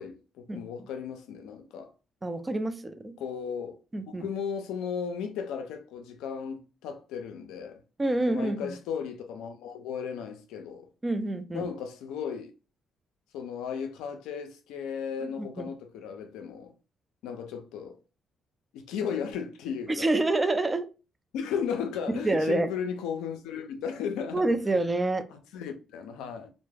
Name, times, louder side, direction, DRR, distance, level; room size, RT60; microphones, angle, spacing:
voice 1, 0.0-1.9 3.2-3.8 4.1-7.8 8.3-10.9 11.5-12.5 13.3-16.7 17.2-18.0 18.7-20.1 21.3-24.5 25.3-26.5, left 7 dB, 90° left, 0.4 m, -35 dB
voice 2, 2.2-3.1 3.9-4.3 8.0-8.7 11.0-11.7 15.4-15.7 19.9-20.9 22.1-22.7 24.3-25.2, right 2 dB, 20° right, 0.4 m, -27 dB
2.2 x 2.1 x 3.2 m
supercardioid pair, 70°, 0 cm